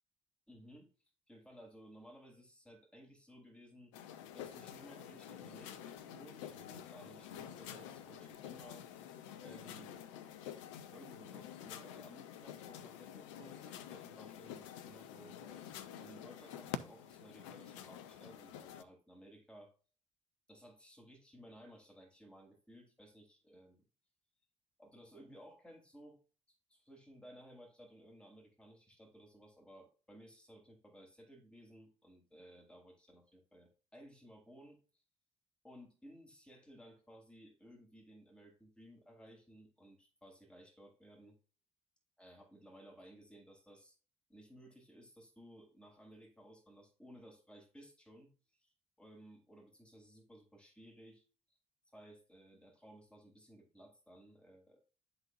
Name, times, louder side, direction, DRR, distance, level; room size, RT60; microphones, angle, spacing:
voice 1, 0.5-0.9 1.3-3.9 4.3-8.8 9.4-10.0 10.9-15.7 15.9-19.7 20.5-23.8 24.8-26.2 26.5-35.0 35.6-41.4 42.2-44.0 44.3-48.3 48.6-48.7 49.0-51.2 51.9-54.8, equal, 5° left, 0 dB, 3.2 m, -58 dB
sound 1, 3.9-18.8, left 10 dB, 80° left, 0.6 m, -49 dB
12.0 x 4.1 x 2.5 m, 0.37 s
hypercardioid pair, 45°, 16 cm